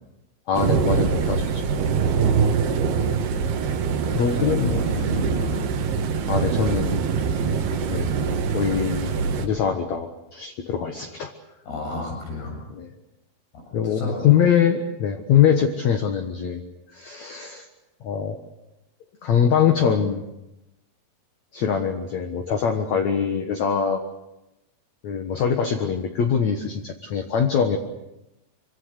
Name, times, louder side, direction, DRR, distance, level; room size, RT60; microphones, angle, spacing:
voice 1, 0.5-1.6 4.1-4.8 6.3-7.1 7.9-8.1 8.5-11.3 12.8-12.9 13.7-16.6 16.9-17.7 18.0-18.4 19.2-20.2 21.5-24.0 25.0-27.8, left 7 dB, 60° left, 4 dB, 2.2 m, -23 dB
sound 1, 0.5-9.5, right 6 dB, 85° right, 3.7 m, -23 dB
voice 2, 4.0-5.6 11.7-12.6 13.8-14.3, left 2 dB, 80° left, 1 dB, 9.2 m, -32 dB
25.5 x 25.0 x 6.7 m, 0.91 s
omnidirectional pair, 4.5 m